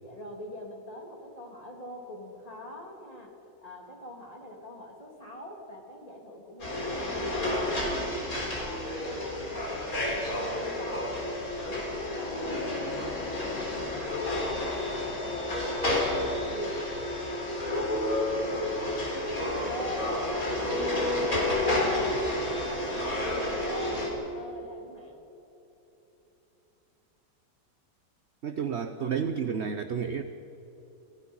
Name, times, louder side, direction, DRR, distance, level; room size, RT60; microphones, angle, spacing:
voice 1, 0.0-3.3 3.6-7.8 8.3-9.7 10.0-11.1 11.7-13.0 13.4-16.9 17.6-19.0 19.6-21.1 21.7-22.2 22.4-23.0 23.6-24.1 24.3-25.2, left 1 dB, 20° left, -1 dB, 3.3 m, -43 dB
sound 1, 6.6-24.1, left 1 dB, 50° left, 4.3 m, -30 dB
voice 2, 28.4-30.2, right 7 dB, 50° right, 9 dB, 0.9 m, -31 dB
30.0 x 16.0 x 5.6 m, 3.0 s
omnidirectional pair, 1.9 m